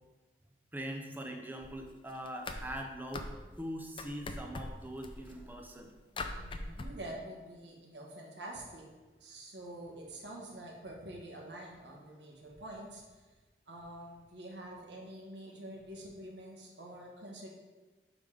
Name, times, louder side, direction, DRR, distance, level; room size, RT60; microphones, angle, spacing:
voice 1, 0.7-3.3 3.6-5.9, equal, 10° right, 3 dB, 0.7 m, -42 dB
sound 1, 1.6-1.9 2.2-3.7 4.0-5.7 6.2-6.8, left 2 dB, 30° left, 0.5 m, -42 dB
voice 2, 6.3-8.8 9.2-13.2 13.7-17.5, right 1 dB, 80° right, -1 dB, 1.6 m, -47 dB
5.8 x 5.3 x 4.9 m, 1.2 s
head